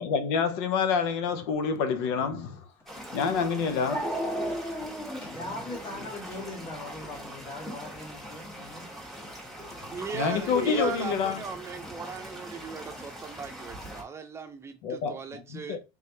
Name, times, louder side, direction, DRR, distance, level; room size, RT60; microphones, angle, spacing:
voice 1, 0.0-2.6 3.1-4.1 9.6-11.4 14.8-15.8, left 5 dB, 90° left, 0.7 m, -28 dB
Dog, 2.8-2.9 3.9-7.3, equal, 20° left, 1.5 m, -34 dB
sound 1, 2.9-14.0, equal, ahead, 1.4 m, -42 dB
voice 2, 5.2-8.9, left 2 dB, 40° left, 2.0 m, -40 dB
voice 3, 9.9-15.8, right 6 dB, 20° right, 0.7 m, -38 dB
3.6 x 3.2 x 2.9 m
cardioid pair, 125°, 13 cm